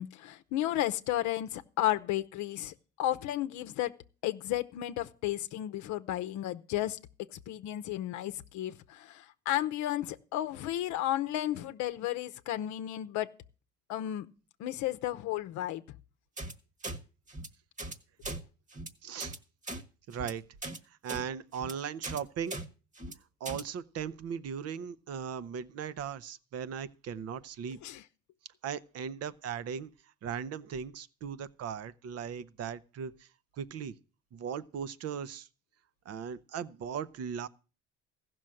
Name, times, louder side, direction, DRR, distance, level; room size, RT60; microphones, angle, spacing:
voice 1, 0.0-3.9 4.2-7.0 7.5-13.3 13.9-14.3 14.6-15.8 27.8-28.0, left 13 dB, 75° left, 0.7 m, -33 dB
sound 1, 16.4-16.5 16.8-17.0 17.3-17.5 17.8-18.0 18.2-18.4 18.7-18.9 19.2-19.4 19.6-19.8 20.1-20.3 20.6-20.8 21.1-21.2 21.5-21.7 22.0-22.2 22.5-22.6 23.0-23.1 23.5-23.6, right 2 dB, 25° right, 1.3 m, -39 dB
voice 2, 19.0-19.3 20.1-20.4 20.9-22.6 23.4-27.8 28.6-29.9 30.2-33.3 33.6-33.9 34.3-35.5 36.1-37.5, right 7 dB, 55° right, 0.8 m, -38 dB
15.0 x 6.2 x 7.6 m
cardioid pair, 95°, 29 cm